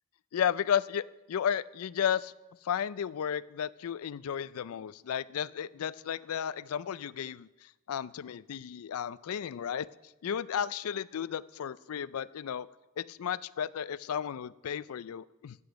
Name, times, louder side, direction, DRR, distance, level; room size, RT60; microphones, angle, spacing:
voice 1, 0.3-2.3 2.6-9.9 10.2-12.7 13.0-15.6, left 8 dB, 90° left, 19 dB, 0.4 m, -33 dB
13.0 x 8.7 x 5.1 m, 1.0 s
head